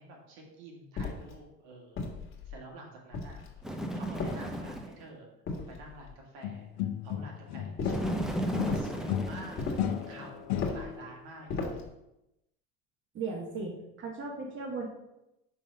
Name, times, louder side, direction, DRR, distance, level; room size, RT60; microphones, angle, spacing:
voice 1, 0.0-2.0 2.5-3.4 3.9-5.3 5.7-8.3 8.7-11.9, right 2 dB, 70° right, 0 dB, 1.9 m, -49 dB
sound 1, 1.0-1.4 2.0-2.6 3.1-3.6 4.2-4.8 5.5-6.1 7.8-8.2 8.7-9.0 9.6-10.0 10.5-10.9 11.5-11.9, left 3 dB, 40° left, 1.5 m, -36 dB
Bird, 3.6-5.0 7.9-10.4, right 1 dB, ahead, 0.7 m, -35 dB
sound 2, 6.4-8.2 8.5-11.1, left 10 dB, 75° left, 0.6 m, -34 dB
voice 2, 13.1-14.9, right 4 dB, 40° right, 0 dB, 1.3 m, -37 dB
5.4 x 3.5 x 5.5 m, 0.88 s
supercardioid pair, 100°, 30 cm